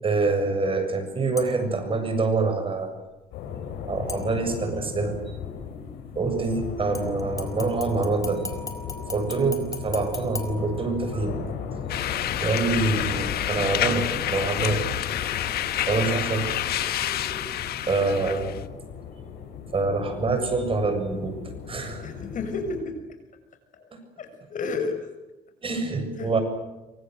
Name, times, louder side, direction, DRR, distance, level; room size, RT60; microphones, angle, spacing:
voice 1, 0.0-3.0 3.8-5.1 6.2-8.4 9.1-11.4 12.4-14.8 15.9-16.5 17.9-18.5 19.7-21.4 21.7-22.0 25.6-26.4, right 3 dB, 30° right, 7 dB, 7.4 m, -25 dB
sound 1, 1.4-1.8 4.1-4.8 6.9-11.3 11.8-11.9, left 3 dB, 20° left, 5.0 m, -39 dB
sound 2, 3.3-22.8, left 7 dB, 85° left, 7.0 m, -36 dB
sound 3, 11.9-18.6, left 12 dB, 65° left, 1.6 m, -29 dB
voice 2, 22.0-23.0 23.7-23.8 24.2-25.0 26.2-26.3, left 3 dB, 50° left, 8 dB, 6.4 m, -31 dB
26.5 x 25.0 x 7.9 m, 1.1 s
cardioid pair, 110°, 17 cm